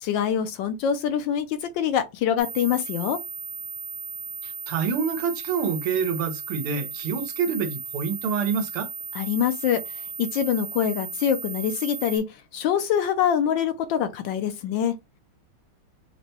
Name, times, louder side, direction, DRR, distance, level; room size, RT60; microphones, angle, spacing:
voice 1, 0.0-3.2 9.1-12.2 12.5-14.9, left 9 dB, 75° left, 1.2 m, -25 dB
sound 1, 2.4-12.2, right 6 dB, 50° right, 0.8 m, -36 dB
voice 2, 4.4-8.9, right 6 dB, 90° right, 1.7 m, -27 dB
5.9 x 2.2 x 2.7 m
omnidirectional pair, 2.3 m